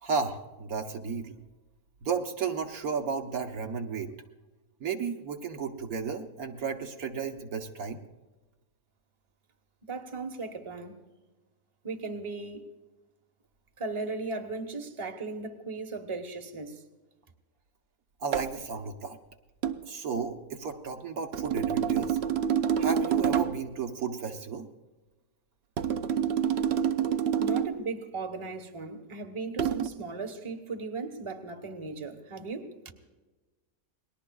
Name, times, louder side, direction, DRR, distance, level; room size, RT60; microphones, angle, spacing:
voice 1, 0.0-1.3 2.0-4.1 4.8-8.0 18.2-19.2 19.8-22.2 22.8-24.7, right 5 dB, 70° right, 3 dB, 1.6 m, -33 dB
voice 2, 9.9-11.0 11.8-12.6 13.8-16.8 27.4-32.9, right 3 dB, 20° right, 4 dB, 1.2 m, -37 dB
sound 1, 18.3-18.6 19.6-19.8 21.3-23.7 25.8-27.8 29.6-29.9, right 8 dB, 55° right, 0.8 m, -27 dB
29.5 x 20.5 x 2.4 m, 1.2 s
omnidirectional pair, 1.6 m